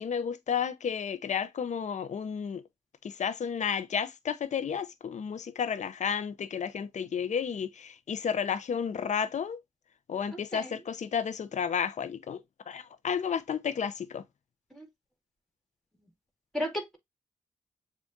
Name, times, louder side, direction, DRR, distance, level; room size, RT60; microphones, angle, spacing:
voice 1, 0.0-2.6 3.0-9.6 10.1-12.4 12.7-14.2, left 7 dB, 60° left, 0.7 m, -32 dB
voice 2, 16.5-17.0, equal, ahead, 2.3 m, -33 dB
7.1 x 2.5 x 2.7 m
supercardioid pair, 40°, 13 cm